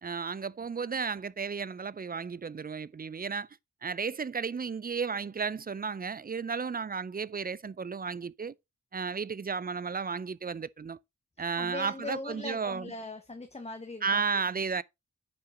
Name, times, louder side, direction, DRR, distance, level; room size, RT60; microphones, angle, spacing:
voice 1, 0.0-3.5 3.8-8.5 8.9-11.0 11.4-12.9 14.0-14.8, right 5 dB, 30° right, 0.4 m, -33 dB
voice 2, 11.6-14.3, left 2 dB, 20° left, 1.0 m, -40 dB
10.0 x 5.7 x 3.8 m
wide cardioid pair, 95°, 31 cm